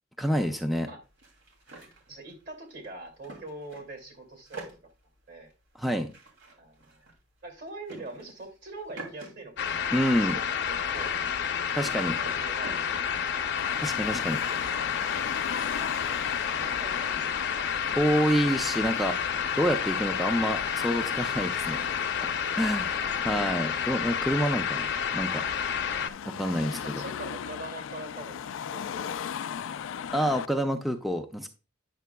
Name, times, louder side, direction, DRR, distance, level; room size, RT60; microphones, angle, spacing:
voice 1, 0.2-0.9 5.8-6.1 9.9-10.4 11.8-12.1 13.8-14.4 18.0-19.1 19.6-21.8 22.2-22.3 22.6-22.9 23.2-24.8 25.1-25.4 26.3-27.0 30.1-31.5, equal, ahead, 5 dB, 0.5 m, -27 dB
sound 1, 1.0-4.0 4.3-9.3 9.6-14.2, right 2 dB, 85° right, 2.6 m, -48 dB
voice 2, 2.1-4.7 5.3-5.5 6.6-7.1 7.4-11.9 12.2-12.8 15.5-16.2 16.6-17.3 21.5-21.7 22.4-23.6 23.9-24.0 26.8-29.2, right 2 dB, 60° right, 3 dB, 2.3 m, -44 dB
sound 2, 9.6-26.1, left 7 dB, 60° left, 0.7 m, -30 dB
Car passing by / Traffic noise roadway noise / Engine, 13.6-30.5, left 8 dB, 80° left, 0.3 m, -39 dB
9.3 x 6.7 x 2.2 m, 0.32 s
head